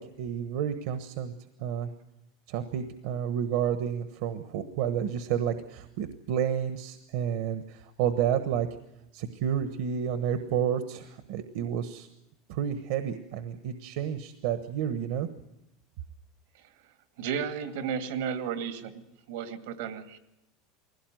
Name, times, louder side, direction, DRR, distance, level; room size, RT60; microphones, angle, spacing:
voice 1, 0.0-1.3 1.6-1.9 2.5-8.7 9.1-12.1 12.5-15.3, right 9 dB, 70° right, 9 dB, 1.2 m, -30 dB
voice 2, 17.2-18.9 19.3-20.2, right 7 dB, 85° right, 8 dB, 2.3 m, -33 dB
20.0 x 17.0 x 9.2 m, 0.90 s
supercardioid pair, 145°, 0 cm